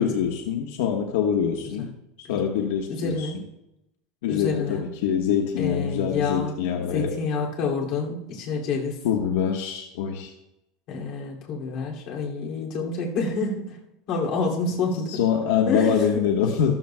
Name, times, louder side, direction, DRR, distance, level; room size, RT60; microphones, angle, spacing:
voice 1, 0.0-1.9 2.3-3.3 4.2-7.1 9.0-10.3 15.1-16.8, left 7 dB, 80° left, 2 dB, 1.2 m, -24 dB
voice 2, 2.9-3.5 4.3-4.9 5.6-6.5 6.9-9.0 10.9-13.8 14.1-15.2 15.6-16.5, left 4 dB, 45° left, -2 dB, 2.5 m, -28 dB
13.5 x 13.5 x 2.2 m, 0.90 s
supercardioid pair, 175°, 0 cm